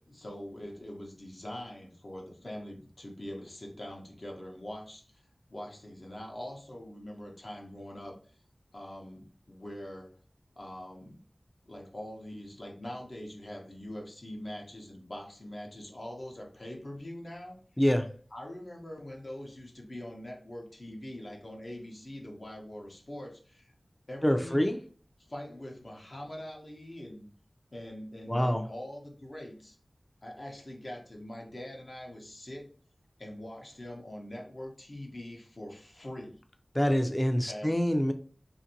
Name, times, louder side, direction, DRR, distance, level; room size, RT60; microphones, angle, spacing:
voice 1, 0.1-5.2 5.5-8.4 8.7-10.1 10.6-11.2 11.7-17.6 18.3-23.7 24.1-24.6 25.2-27.3 27.7-29.8 30.2-32.7 33.2-36.4 37.4-37.7, left 1 dB, 55° left, 0.7 m, -43 dB
voice 2, 17.8-18.2 24.2-24.8 28.3-28.7 36.7-38.1, equal, 15° left, 0.4 m, -26 dB
2.6 x 2.5 x 2.8 m
wide cardioid pair, 60°, 0 cm